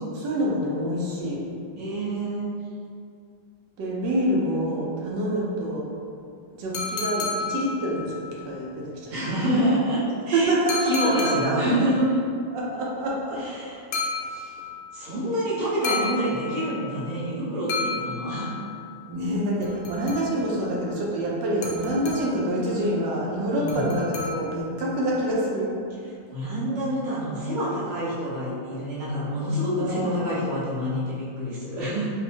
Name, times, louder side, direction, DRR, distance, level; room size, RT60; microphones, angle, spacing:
voice 1, 0.1-1.5 3.8-5.9 6.6-9.1 10.3-11.3 12.5-13.4 14.2-14.6 19.1-25.7 29.8-30.5, right 1 dB, 80° right, -4 dB, 1.3 m, -26 dB
voice 2, 1.8-2.5 9.1-10.5 10.8-12.1 13.4-13.8 14.9-18.5 23.5-23.9 26.3-32.1, equal, 35° right, -11 dB, 0.8 m, -27 dB
sound 1, 6.7-8.2 10.7-11.8 13.9-14.8 15.8-16.9 17.7-18.7 19.6-20.6 21.6-22.5 23.7-24.8, left 3 dB, 75° left, 1.1 m, -31 dB
4.3 x 2.1 x 2.7 m, 2.4 s
omnidirectional pair, 2.0 m